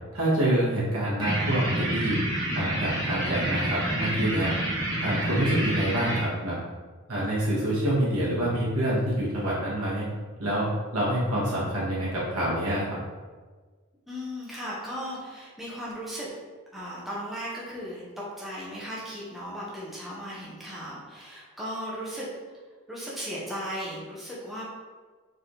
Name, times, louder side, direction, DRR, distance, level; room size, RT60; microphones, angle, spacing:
voice 1, 0.1-2.2 2.5-4.5 5.0-6.6 7.1-10.0 10.4-13.0, right 1 dB, 80° right, -7 dB, 1.4 m, -26 dB
sound 1, 1.2-6.2, right 1 dB, 20° right, 1.3 m, -28 dB
voice 2, 14.1-16.3 16.7-22.5 22.9-24.6, equal, ahead, -7 dB, 0.6 m, -36 dB
4.1 x 3.2 x 2.7 m, 1.4 s
head